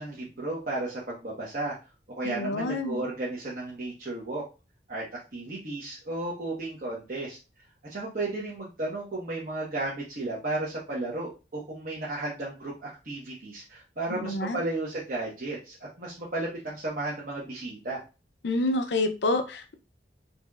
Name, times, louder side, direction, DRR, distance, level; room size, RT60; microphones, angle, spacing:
voice 1, 0.0-1.8 2.2-4.4 4.9-5.0 5.3-7.4 7.9-18.0, right 2 dB, 50° right, -7 dB, 1.1 m, -34 dB
voice 2, 2.2-3.0 14.1-14.6 18.4-19.7, left 2 dB, 80° left, 7 dB, 0.6 m, -28 dB
4.0 x 3.0 x 2.4 m, 0.29 s
head